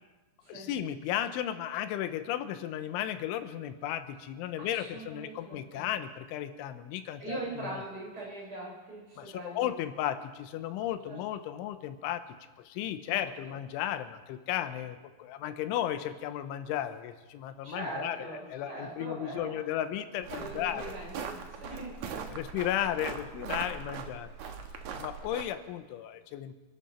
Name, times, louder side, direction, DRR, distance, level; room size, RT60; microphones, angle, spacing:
voice 1, 0.5-7.4 9.2-12.2 12.6-21.3 21.7-21.8 22.3-24.3 25.0-26.6, left 11 dB, 90° left, 10 dB, 3.3 m, -34 dB
voice 2, 4.6-5.9 7.2-9.7 11.1-11.2 13.1-13.6 17.6-19.6 20.3-22.3, right 1 dB, 20° right, -3 dB, 5.2 m, -41 dB
sound 1, 20.2-25.4, right 6 dB, 90° right, 1.6 m, -40 dB
28.0 x 12.0 x 4.3 m, 1.2 s
omnidirectional pair, 5.4 m